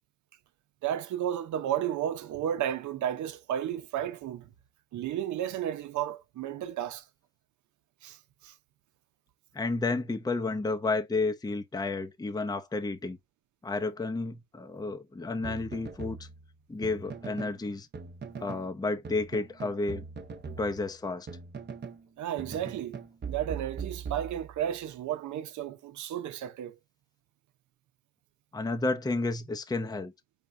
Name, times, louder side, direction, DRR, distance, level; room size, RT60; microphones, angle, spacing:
voice 1, 0.8-4.5 4.9-7.1 8.0-8.5 22.2-23.0 23.3-26.7, right 10 dB, 75° right, 0.8 m, -33 dB
voice 2, 9.5-13.2 13.6-16.3 16.7-17.9 18.4-20.0 20.6-21.3 28.5-30.1, left 3 dB, 15° left, 0.7 m, -31 dB
sound 1, 15.4-17.6 17.9-18.7 19.0-22.0 22.4-24.8, right 5 dB, 35° right, 0.9 m, -41 dB
4.1 x 3.6 x 3.3 m
cardioid pair, 90°, 30 cm